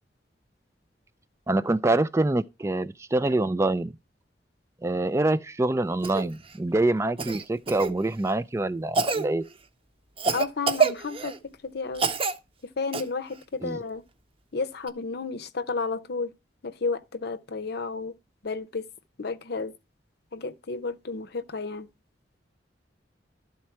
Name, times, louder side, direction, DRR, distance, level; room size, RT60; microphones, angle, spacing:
voice 1, 1.5-3.9 4.8-9.4 13.6-13.8, right 2 dB, 15° right, 0.4 m, -25 dB
Cough, 6.0-6.3 7.2-7.9 8.9-9.3 10.2-11.4 12.0-12.4 12.9-13.0 14.9-15.0, right 4 dB, 30° right, 0.8 m, -26 dB
voice 2, 10.3-12.1 12.6-14.0 14.5-16.3 16.6-18.1 18.4-18.9 19.2-19.7 20.3-21.9, left 4 dB, 60° left, 0.7 m, -32 dB
12.5 x 4.3 x 4.4 m
head